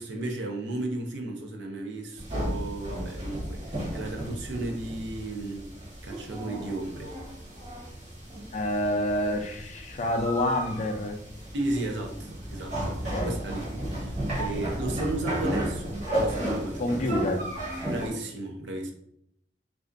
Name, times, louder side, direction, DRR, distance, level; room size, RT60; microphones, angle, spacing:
voice 1, 0.0-5.7 6.0-7.1 11.5-17.3 17.9-18.9, right 2 dB, 85° right, 3 dB, 0.5 m, -34 dB
sound 1, 2.2-18.1, right 1 dB, 40° right, 0.9 m, -33 dB
voice 2, 8.5-11.2 12.8-13.4 16.8-17.4, left 1 dB, 40° left, 3 dB, 0.3 m, -28 dB
2.5 x 2.2 x 2.4 m, 0.71 s
head